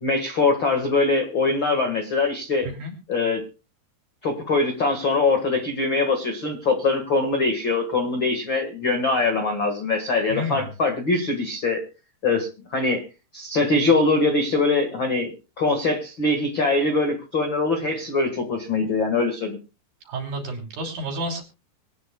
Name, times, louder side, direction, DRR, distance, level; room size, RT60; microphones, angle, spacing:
voice 1, 0.0-2.7 3.1-3.4 4.2-11.8 12.2-13.0 13.3-19.6, left 3 dB, 50° left, 4 dB, 1.4 m, -23 dB
voice 2, 10.3-10.7 20.1-21.4, right 1 dB, 60° right, 2 dB, 4.9 m, -30 dB
24.5 x 9.6 x 2.3 m, 0.31 s
omnidirectional pair, 4.8 m